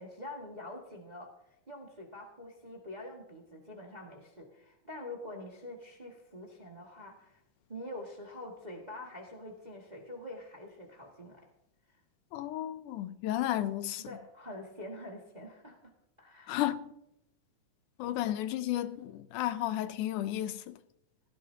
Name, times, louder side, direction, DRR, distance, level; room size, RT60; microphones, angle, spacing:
voice 1, 0.0-7.4 7.7-11.5 14.0-15.9 16.2-16.6, left 1 dB, 20° right, 1.2 m, -46 dB
voice 2, 12.3-14.0 16.5-16.9 18.0-20.8, left 13 dB, 80° left, 2.0 m, -33 dB
17.0 x 16.0 x 2.8 m
omnidirectional pair, 3.7 m